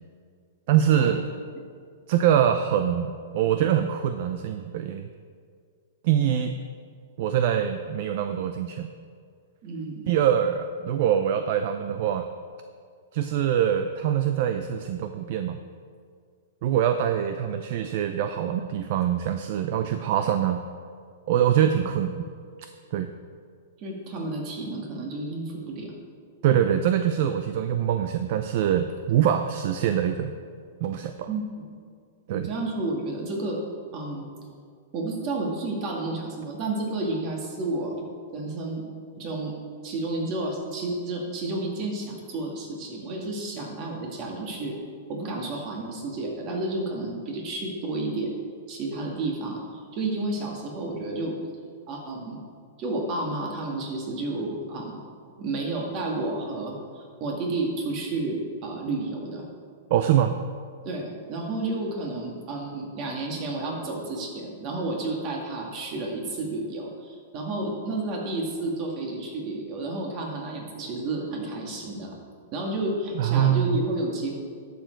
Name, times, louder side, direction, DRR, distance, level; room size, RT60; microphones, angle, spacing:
voice 1, 0.7-1.2 2.1-5.1 6.0-6.6 7.2-8.9 10.1-12.3 13.1-15.6 16.6-20.6 21.3-22.3 22.9-23.1 26.4-30.3 30.8-31.3 32.3-32.5 59.9-60.3 73.2-73.8, right 9 dB, 50° right, 8 dB, 0.5 m, -24 dB
voice 2, 9.6-10.1 23.8-25.9 31.3-31.7 32.3-33.6 33.9-34.3 34.9-38.0 38.3-38.8 39.2-39.5 39.8-44.8 45.1-48.3 48.7-51.4 51.9-52.4 52.8-55.0 55.4-59.4 60.8-72.1 72.5-74.3, right 2 dB, 35° right, 0 dB, 2.1 m, -31 dB
11.5 x 7.0 x 4.6 m, 2.1 s
hypercardioid pair, 155°, 0 cm